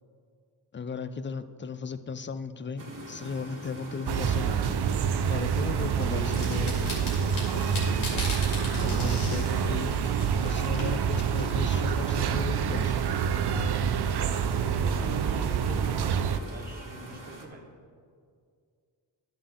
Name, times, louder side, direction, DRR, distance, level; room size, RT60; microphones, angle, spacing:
voice 1, 0.7-4.8 5.3-8.3 8.8-10.0 10.4-12.9, left 5 dB, 25° left, 12 dB, 0.5 m, -36 dB
sound 1, 2.8-17.5, right 2 dB, 40° right, 1.5 m, -44 dB
sound 2, 4.1-16.4, right 7 dB, 55° right, 0.6 m, -27 dB
sound 3, 6.0-12.9, left 2 dB, 90° left, 2.3 m, -40 dB
voice 2, 14.2-14.5 14.8-17.6, right 1 dB, 20° right, -2 dB, 1.5 m, -42 dB
11.0 x 7.0 x 3.7 m, 2.2 s
cardioid pair, 55°, 46 cm